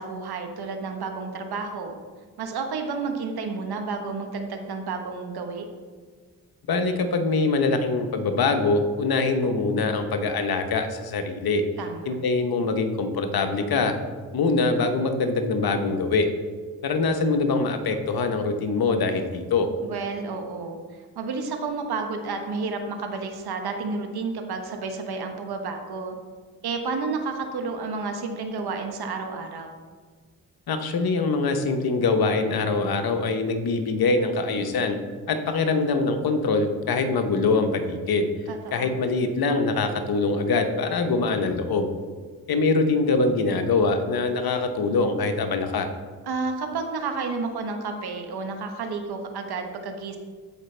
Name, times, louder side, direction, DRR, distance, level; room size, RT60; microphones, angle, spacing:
voice 1, 0.0-1.9 2.4-5.7 11.8-12.1 19.8-20.8 21.1-26.1 26.6-29.7 38.5-39.0 46.3-50.2, right 4 dB, 75° right, 5 dB, 1.2 m, -31 dB
voice 2, 6.7-11.6 12.0-14.0 14.3-16.3 16.8-19.7 30.7-35.0 35.3-38.3 38.7-41.9 42.5-45.9, left 3 dB, 65° left, 6 dB, 1.0 m, -23 dB
13.5 x 5.0 x 3.3 m, 1.5 s
cardioid pair, 60°, 39 cm